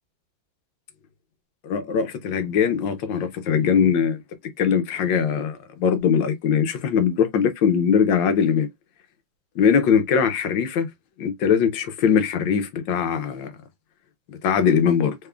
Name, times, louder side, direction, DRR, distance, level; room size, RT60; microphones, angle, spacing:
voice 1, 1.6-4.2 4.6-8.7 9.6-10.9 11.2-13.5 14.3-15.2, left 7 dB, 70° left, 1.4 m, -21 dB
3.6 x 3.6 x 2.2 m
omnidirectional pair, 2.3 m